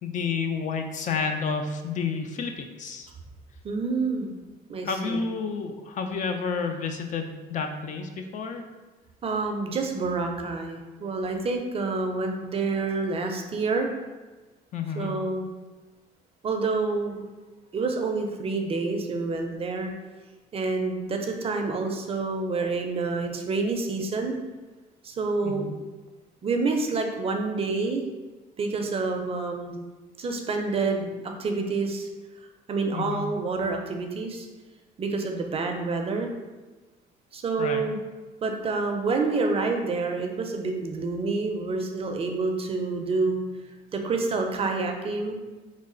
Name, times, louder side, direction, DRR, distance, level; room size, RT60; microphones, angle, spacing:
voice 1, 0.0-3.1 4.8-8.6 14.7-15.1 25.4-25.8 32.9-33.2 37.6-37.8, left 5 dB, 45° left, 5 dB, 0.4 m, -30 dB
voice 2, 3.6-4.3 4.7-5.2 9.2-13.9 14.9-15.5 16.4-17.3 17.7-19.9 20.5-24.4 25.0-25.7 26.4-28.0 28.6-29.8 30.2-32.1 32.7-34.5 35.0-36.3 37.3-38.0 38.4-43.4 43.9-45.3, right 3 dB, 35° right, 3 dB, 0.4 m, -28 dB
3.1 x 2.3 x 3.8 m, 1.2 s
cardioid pair, 110°, 17 cm